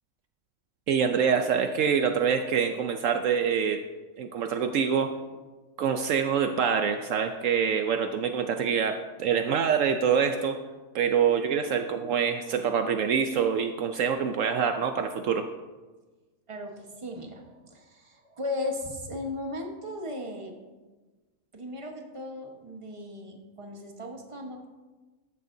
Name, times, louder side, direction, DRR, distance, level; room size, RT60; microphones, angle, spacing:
voice 1, 0.9-3.8 4.2-5.1 5.8-10.6 10.9-15.4, right 7 dB, 70° right, 7 dB, 1.0 m, -25 dB
voice 2, 16.5-20.6 21.5-24.7, left 2 dB, 25° right, 2 dB, 1.2 m, -37 dB
14.0 x 11.0 x 2.7 m, 1.3 s
omnidirectional pair, 1.4 m